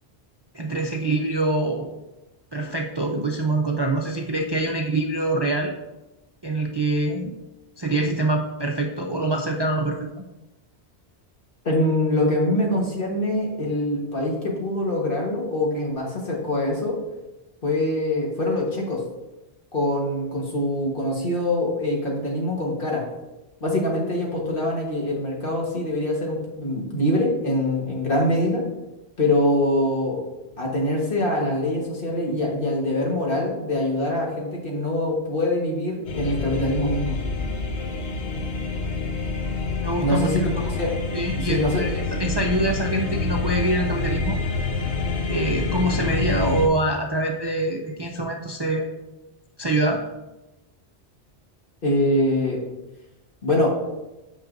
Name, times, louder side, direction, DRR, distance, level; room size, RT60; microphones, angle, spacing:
voice 1, 0.5-1.9 2.5-5.7 6.4-7.4 7.8-10.1 39.8-40.3 40.7-40.8 41.1-44.4 45.3-48.9 49.6-50.0, right 2 dB, 35° right, 0 dB, 0.4 m, -25 dB
voice 2, 11.7-17.0 17.6-19.0 19.7-23.0 23.6-28.6 29.2-30.2 30.6-37.2 40.0-40.4 40.7-40.9 41.4-41.8 51.8-52.6 53.4-53.8, left 1 dB, 55° left, -1 dB, 1.6 m, -24 dB
sound 1, 36.1-46.7, left 3 dB, 90° left, 1.1 m, -27 dB
8.9 x 5.5 x 2.6 m, 1.0 s
omnidirectional pair, 1.1 m